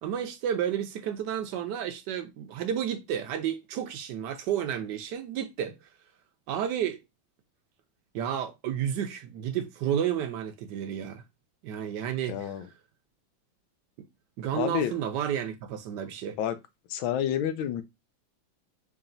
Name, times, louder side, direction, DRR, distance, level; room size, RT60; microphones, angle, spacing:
voice 1, 0.0-5.8 6.5-7.0 8.1-11.2 11.6-12.5 14.4-16.4, right 9 dB, 70° right, 1.1 m, -31 dB
voice 2, 12.3-12.7 14.5-14.9 16.4-16.6 16.9-17.8, left 10 dB, 80° left, 1.3 m, -29 dB
4.9 x 2.8 x 2.5 m
omnidirectional pair, 2.2 m